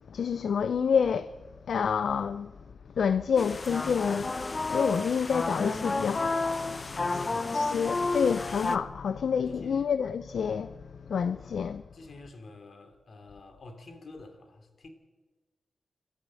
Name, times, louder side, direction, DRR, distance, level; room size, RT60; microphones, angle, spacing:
voice 1, 0.1-1.3 1.7-2.5 3.0-4.3 4.7-6.8 7.5-10.8 11.1-11.8, left 6 dB, 80° left, 0.5 m, -28 dB
sound 1, 3.4-8.8, left 3 dB, 35° left, 0.8 m, -31 dB
voice 2, 6.9-8.0 9.5-9.9 11.9-14.9, left 3 dB, 60° left, 2.9 m, -48 dB
27.0 x 13.0 x 7.6 m
wide cardioid pair, 100°, 0 cm